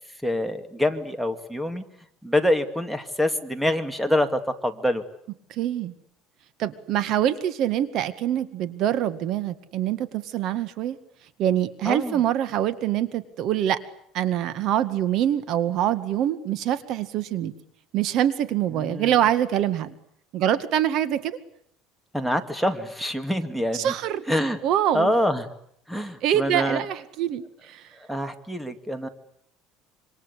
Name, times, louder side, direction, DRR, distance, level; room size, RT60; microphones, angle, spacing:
voice 1, 0.2-1.8 2.2-5.0 11.9-12.2 18.7-19.1 22.1-23.9 24.3-24.6 24.9-25.5 25.9-26.8 28.1-29.1, left 1 dB, ahead, 9 dB, 2.4 m, -25 dB
voice 2, 5.6-5.9 6.6-11.0 11.4-13.8 14.1-17.5 17.9-19.9 20.3-21.4 23.7-24.2 24.6-25.1 26.2-27.8, right 11 dB, 60° right, 13 dB, 2.0 m, -24 dB
27.0 x 25.5 x 8.4 m, 0.71 s
cardioid pair, 125°, 0 cm